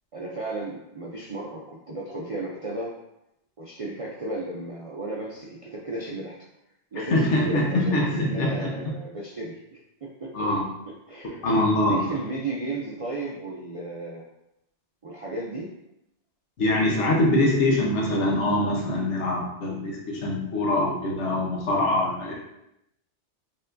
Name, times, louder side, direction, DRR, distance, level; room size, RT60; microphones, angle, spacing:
voice 1, 0.1-2.9 3.6-6.4 6.9-10.5 10.8-11.5 11.8-14.2 15.0-15.7, right 2 dB, 55° right, -3 dB, 0.4 m, -34 dB
voice 2, 7.0-8.7 10.3-10.6 11.2-12.1 16.6-22.3, left 1 dB, 80° left, -2 dB, 1.3 m, -24 dB
4.4 x 3.6 x 2.5 m, 0.85 s
omnidirectional pair, 1.2 m